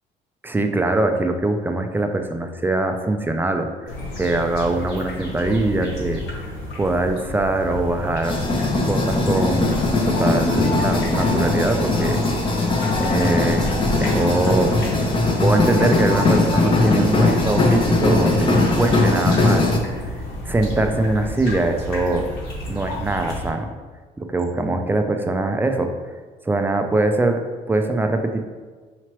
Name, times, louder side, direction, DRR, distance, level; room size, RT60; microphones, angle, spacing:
voice 1, 0.4-6.2 6.8-8.4 8.8-12.2 13.0-14.8 15.4-19.7 20.5-22.3 22.7-23.7 24.2-25.9 26.5-28.4, right 2 dB, 10° right, 5 dB, 0.3 m, -22 dB
sound 1, 3.9-23.5, left 1 dB, 75° left, 1.5 m, -31 dB
sound 2, 8.2-19.8, left 2 dB, 30° left, 0.7 m, -20 dB
5.8 x 2.9 x 3.0 m, 1.4 s
cardioid pair, 110°, 17 cm